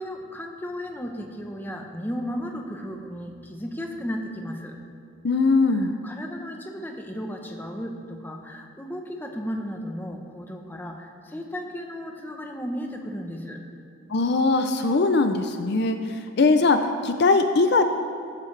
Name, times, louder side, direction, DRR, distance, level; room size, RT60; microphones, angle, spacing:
voice 1, 0.0-4.8 5.7-13.6, equal, 10° left, 2 dB, 0.9 m, -34 dB
voice 2, 5.2-6.0 14.1-17.8, left 3 dB, 50° left, 8 dB, 0.5 m, -21 dB
14.5 x 12.5 x 3.3 m, 2.5 s
head